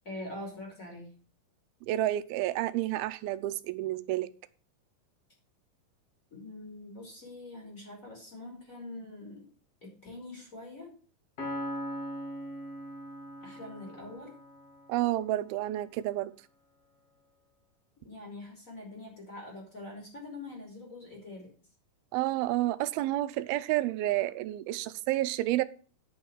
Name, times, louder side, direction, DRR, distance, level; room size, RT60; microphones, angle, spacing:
voice 1, 0.0-1.1 6.3-9.5 9.8-10.9 13.4-14.4 18.0-21.5, left 2 dB, 20° left, -1 dB, 3.5 m, -44 dB
voice 2, 1.9-4.3 14.9-16.3 22.1-25.6, right 15 dB, 90° right, 14 dB, 2.5 m, -30 dB
Piano, 11.4-15.0, equal, 45° left, 3.3 m, -40 dB
9.7 x 5.5 x 7.3 m, 0.38 s
omnidirectional pair, 4.2 m